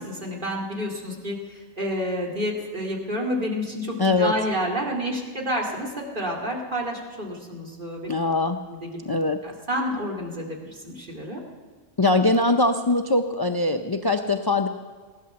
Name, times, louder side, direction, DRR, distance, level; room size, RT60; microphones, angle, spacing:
voice 1, 0.0-8.1 8.6-9.2 9.4-11.4, equal, 40° right, -1 dB, 2.5 m, -29 dB
voice 2, 4.0-4.3 8.1-8.6 9.1-9.4 12.0-14.7, left 2 dB, 35° left, 6 dB, 0.4 m, -22 dB
16.0 x 11.5 x 6.9 m, 1.5 s
omnidirectional pair, 1.3 m